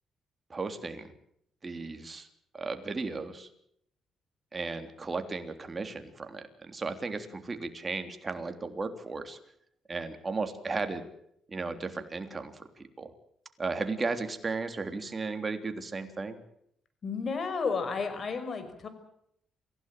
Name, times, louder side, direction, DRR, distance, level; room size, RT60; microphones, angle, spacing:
voice 1, 0.5-1.1 1.6-2.3 2.5-3.5 4.5-9.4 9.9-11.1 11.5-13.1 13.6-16.4, right 3 dB, 30° right, 7 dB, 3.3 m, -35 dB
voice 2, 17.0-18.9, left 5 dB, 45° left, 10 dB, 5.8 m, -32 dB
27.5 x 16.5 x 7.6 m, 0.72 s
cardioid pair, 90°, 0 cm